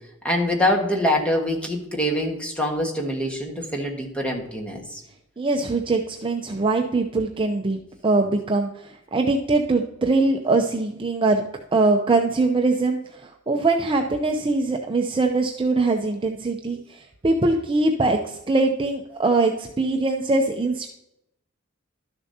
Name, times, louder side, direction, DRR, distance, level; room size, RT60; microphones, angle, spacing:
voice 1, 0.2-5.0, left 1 dB, 5° left, 0 dB, 1.4 m, -24 dB
voice 2, 5.4-11.4 11.7-20.9, right 3 dB, 25° right, 3 dB, 0.5 m, -22 dB
12.0 x 6.9 x 2.8 m, 0.80 s
head